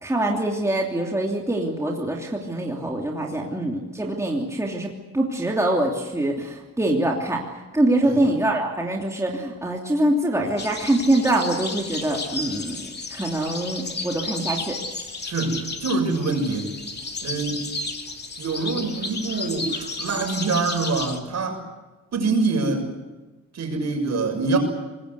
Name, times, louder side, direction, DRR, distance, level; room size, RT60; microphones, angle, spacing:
voice 1, 0.0-7.4 7.7-14.8, right 1 dB, 10° right, -1 dB, 2.9 m, -24 dB
sound 1, 10.6-21.2, left 3 dB, 30° left, 2.7 m, -33 dB
voice 2, 15.2-16.7 17.2-17.7 18.4-21.6 22.1-22.9 23.5-24.6, right 3 dB, 50° right, 4 dB, 6.7 m, -25 dB
25.0 x 21.0 x 8.2 m, 1.2 s
cardioid pair, 125°, 33 cm